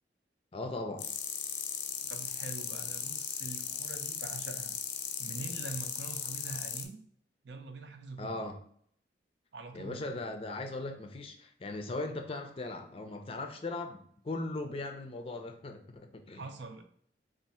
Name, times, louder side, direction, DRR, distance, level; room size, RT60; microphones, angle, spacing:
voice 1, 0.5-1.1 8.2-8.6 9.7-16.4, left 2 dB, 30° left, 0.4 m, -38 dB
sound 1, 1.0-6.8, left 8 dB, 85° left, 0.5 m, -37 dB
voice 2, 2.0-4.7 5.2-7.0 7.4-8.4 9.5-10.0 16.3-16.8, right 3 dB, 75° right, 0.6 m, -44 dB
3.6 x 2.4 x 4.2 m
head